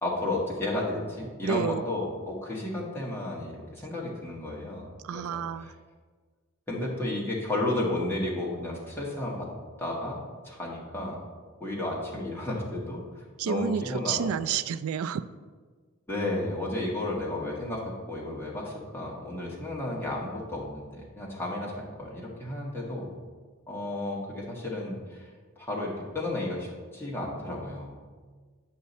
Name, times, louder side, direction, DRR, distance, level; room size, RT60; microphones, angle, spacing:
voice 1, 0.0-5.7 6.7-9.5 9.8-10.2 10.4-11.2 11.6-14.3 16.1-23.1 23.7-25.3 25.6-26.7 26.9-27.9, left 1 dB, 10° left, -4 dB, 1.5 m, -33 dB
voice 2, 1.4-1.8 5.0-5.7 13.4-15.2, right 8 dB, 80° right, 15 dB, 0.3 m, -30 dB
8.6 x 5.7 x 4.2 m, 1.5 s
head